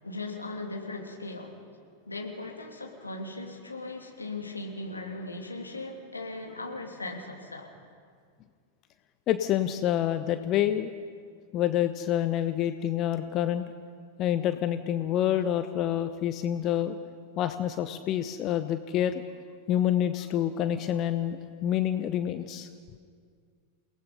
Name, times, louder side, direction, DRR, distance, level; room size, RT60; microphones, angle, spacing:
voice 1, 0.0-1.6 2.1-7.7, left 2 dB, 80° left, 1 dB, 2.7 m, -38 dB
voice 2, 9.3-10.9 11.5-13.6 14.2-17.0 17.4-19.2 19.7-22.7, left 11 dB, 35° left, 10 dB, 0.8 m, -27 dB
28.5 x 18.5 x 5.5 m, 2.1 s
figure-of-eight pair, 90°, 0 cm